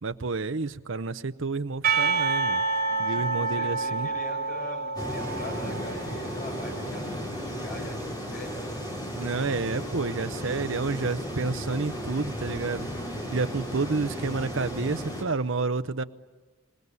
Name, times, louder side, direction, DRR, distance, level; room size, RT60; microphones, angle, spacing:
voice 1, 0.0-2.6 3.0-4.1 9.1-12.9 13.3-16.0, right 3 dB, 60° right, 12 dB, 0.8 m, -30 dB
Percussion / Church bell, 1.8-6.8, right 4 dB, 45° right, 5.0 m, -28 dB
voice 2, 2.9-9.2 14.0-14.5, left 1 dB, 40° left, 2 dB, 6.2 m, -43 dB
sound 1, 5.0-15.2, equal, 20° left, 4.1 m, -34 dB
26.5 x 18.0 x 9.5 m, 1.3 s
head